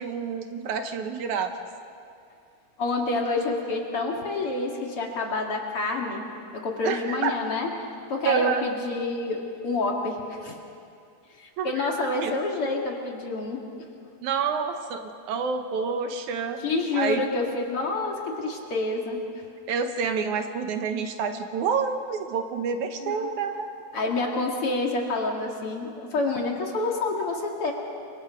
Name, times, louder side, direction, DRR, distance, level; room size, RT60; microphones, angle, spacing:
voice 1, 0.0-1.5 6.8-7.3 8.3-8.6 11.6-12.4 14.2-16.6 16.9-17.2 19.7-23.7, right 6 dB, 70° right, 7 dB, 2.3 m, -28 dB
voice 2, 2.8-6.3 6.5-7.7 8.1-10.6 11.4-13.6 16.6-19.2 23.0-23.3 23.9-27.7, left 3 dB, 45° left, 0 dB, 2.8 m, -28 dB
29.0 x 24.5 x 5.2 m, 2.4 s
omnidirectional pair, 3.7 m